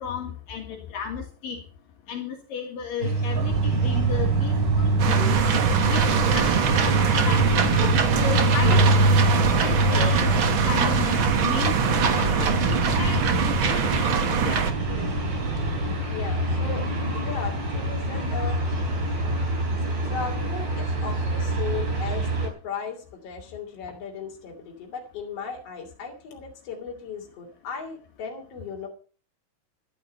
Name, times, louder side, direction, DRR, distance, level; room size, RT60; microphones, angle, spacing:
voice 1, 0.0-1.6 2.1-5.4 5.9-8.8 9.6-10.3 10.6-14.1 14.4-14.6, left 7 dB, 75° left, 2 dB, 3.5 m, -34 dB
sound 1, 3.0-22.5, right 1 dB, 30° right, 4.6 m, -25 dB
sound 2, 3.3-16.0, right 10 dB, 75° right, 2.7 m, -29 dB
sound 3, 5.0-14.7, right 7 dB, 50° right, 1.6 m, -24 dB
voice 2, 9.8-10.1 14.9-15.2 15.7-15.8 16.1-16.8 17.1-18.6 20.0-28.9, left 5 dB, 45° left, 1 dB, 3.9 m, -36 dB
12.5 x 11.5 x 5.5 m, 0.38 s
omnidirectional pair, 4.0 m